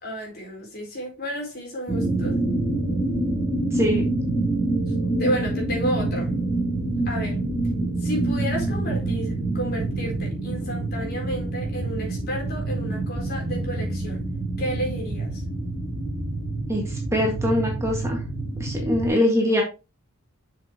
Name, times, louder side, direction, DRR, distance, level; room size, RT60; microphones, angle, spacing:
voice 1, 0.0-2.4 5.2-6.3 7.1-7.4 8.0-14.2 14.6-15.4, equal, 45° left, 4.1 m, -31 dB
sound 1, 1.9-19.1, right 2 dB, 10° left, 2.5 m, -27 dB
voice 2, 3.7-4.0 16.7-18.2 18.6-19.6, left 1 dB, 15° right, 1.8 m, -23 dB
7.7 x 6.9 x 2.9 m
head